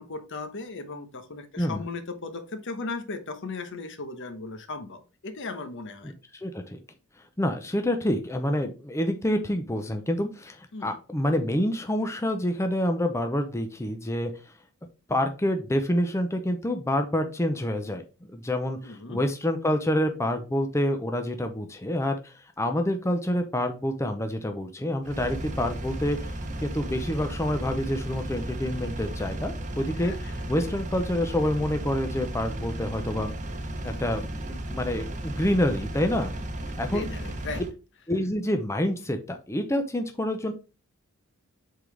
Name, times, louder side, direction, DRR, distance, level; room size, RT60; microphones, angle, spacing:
voice 1, 0.0-6.1 10.7-10.9 18.8-19.2 30.0-30.3 36.9-37.6, left 3 dB, 60° left, 8 dB, 1.1 m, -37 dB
voice 2, 6.0-6.8 7.4-14.3 15.1-18.0 18.3-26.2 26.6-33.3 33.8-36.3 36.8-37.1 38.1-40.5, left 1 dB, 15° left, 6 dB, 0.6 m, -27 dB
Engine, 25.0-37.7, right 1 dB, 35° right, 0.9 m, -34 dB
7.8 x 4.0 x 3.3 m, 0.33 s
head